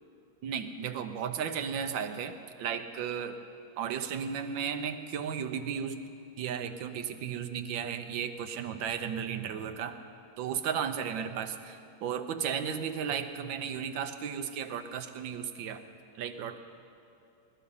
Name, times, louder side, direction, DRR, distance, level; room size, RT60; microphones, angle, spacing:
voice 1, 0.4-3.4 3.8-6.0 6.4-10.0 10.4-15.8 16.1-16.6, right 7 dB, 80° right, 8 dB, 1.5 m, -34 dB
20.5 x 12.5 x 5.5 m, 2.7 s
omnidirectional pair, 2.1 m